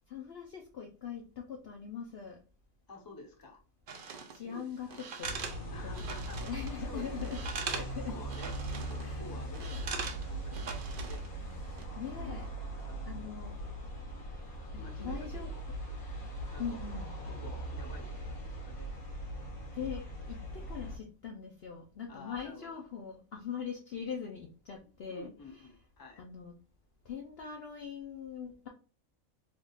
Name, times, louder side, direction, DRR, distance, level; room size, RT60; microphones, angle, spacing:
voice 1, 0.1-2.4 4.3-5.3 6.0-6.1 6.4-7.4 7.7-8.2 9.0-9.3 12.0-12.5 13.0-13.6 14.7-15.5 16.6-17.1 19.7-20.0 20.3-25.3 26.2-26.5 27.0-28.7, left 7 dB, 60° left, 1 dB, 0.7 m, -41 dB
voice 2, 2.9-3.6 4.2-5.0 5.7-6.4 6.8-8.5 8.9-11.2 12.2-12.4 12.8-13.5 14.7-15.8 16.4-18.9 22.1-22.8 25.1-26.2, left 2 dB, 20° left, 2 dB, 0.6 m, -51 dB
sound 1, 3.9-4.4 4.9-6.7 7.0-7.9 8.2-9.1 9.5-11.3 11.6-11.8, right 5 dB, 55° right, 0.6 m, -41 dB
sound 2, 5.2-21.0, right 1 dB, 80° left, 1.8 m, -40 dB
3.6 x 2.3 x 3.9 m, 0.37 s
omnidirectional pair, 1.5 m